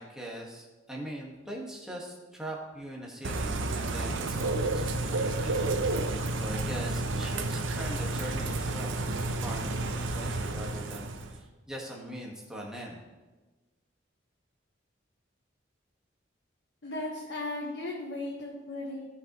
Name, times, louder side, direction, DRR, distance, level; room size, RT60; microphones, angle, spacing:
voice 1, 0.0-13.0, equal, 5° right, -3 dB, 1.5 m, -42 dB
Bird / Rain, 3.2-11.4, right 2 dB, 85° right, 0.8 m, -31 dB
voice 2, 16.8-19.1, left 2 dB, 70° left, -2 dB, 1.3 m, -36 dB
16.5 x 5.6 x 3.0 m, 1.2 s
head